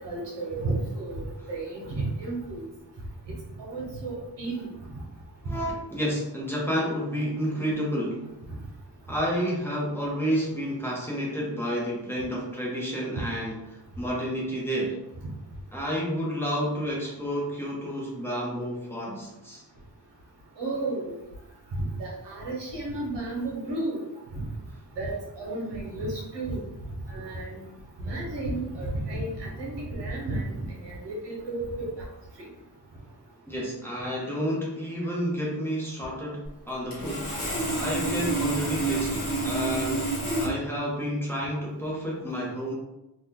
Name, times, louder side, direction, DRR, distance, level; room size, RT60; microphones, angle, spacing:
voice 1, 0.0-2.7 3.3-4.7 20.6-21.2 21.8-24.0 24.3-24.4 25.0-26.6 27.1-27.6 28.0-32.1 32.4-32.5, right 2 dB, 90° right, -3 dB, 1.0 m, -32 dB
voice 2, 5.4-8.3 9.1-15.0 15.7-19.6 33.5-42.7, equal, 5° left, -5 dB, 0.7 m, -30 dB
Sawing, 36.9-40.4, right 2 dB, 55° left, 1.5 m, -28 dB
2.7 x 2.2 x 3.6 m, 0.93 s
wide cardioid pair, 165°, 41 cm